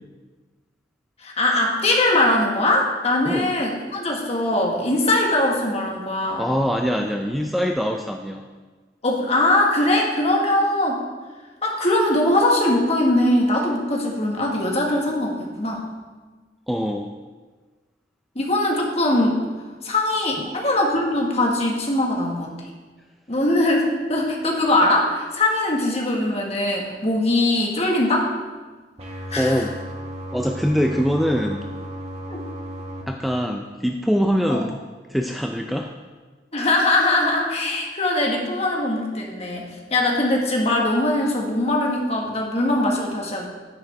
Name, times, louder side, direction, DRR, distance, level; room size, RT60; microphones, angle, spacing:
voice 1, 1.2-6.4 9.0-11.0 11.6-15.9 18.3-19.4 19.8-22.5 23.3-28.3 29.3-29.6 32.3-32.4 34.5-34.6 36.5-43.5, left 1 dB, 35° left, -1 dB, 1.6 m, -21 dB
voice 2, 6.4-8.4 16.7-17.1 20.5-20.6 29.3-29.7 30.3-31.7 33.1-34.8 35.1-35.9, equal, ahead, 3 dB, 0.4 m, -23 dB
sound 1, 29.0-33.0, equal, 35° right, 1.5 m, -34 dB
9.9 x 9.5 x 3.4 m, 1.4 s
head